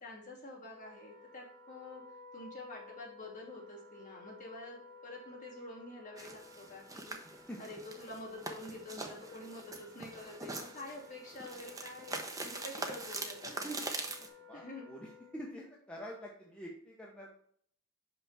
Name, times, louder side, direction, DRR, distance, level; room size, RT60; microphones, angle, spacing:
voice 1, 0.0-2.0 2.3-13.7 14.5-14.8, left 2 dB, 35° left, -4 dB, 2.8 m, -48 dB
Wind instrument woodwind instrument, 0.6-15.5, left 4 dB, 40° right, 2.1 m, -56 dB
sound 1, 6.2-14.3, right 2 dB, 15° right, 0.8 m, -43 dB
voice 2, 13.5-13.8 14.2-17.3, equal, 5° left, -3 dB, 1.0 m, -46 dB
6.0 x 5.7 x 4.2 m, 0.62 s
head